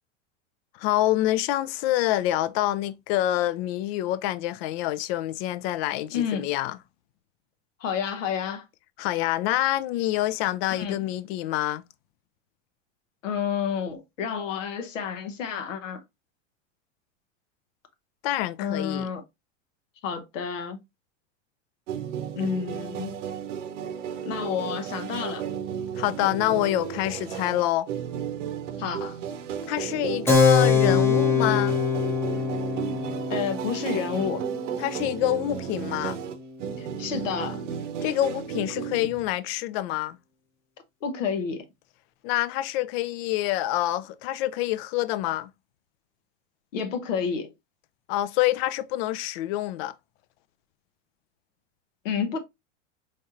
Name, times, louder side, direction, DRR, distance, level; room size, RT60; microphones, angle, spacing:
voice 1, 0.8-6.8 9.0-11.8 18.2-19.1 26.0-27.9 29.7-31.8 34.8-36.2 38.0-40.2 42.2-45.5 48.1-49.9, left 14 dB, 55° left, 0.4 m, -26 dB
voice 2, 6.1-6.5 7.8-8.6 10.7-11.0 13.2-16.0 18.6-19.2 20.0-20.8 22.3-23.1 24.2-25.4 28.8-29.2 33.3-34.4 36.8-37.6 41.0-41.7 46.7-47.5 52.0-52.4, left 7 dB, 85° left, 0.8 m, -30 dB
sound 1, 21.9-39.3, right 8 dB, 75° right, 0.7 m, -34 dB
Keyboard (musical), 30.3-36.4, left 5 dB, 5° left, 0.7 m, -24 dB
4.2 x 3.2 x 2.4 m
hypercardioid pair, 100°, 37 cm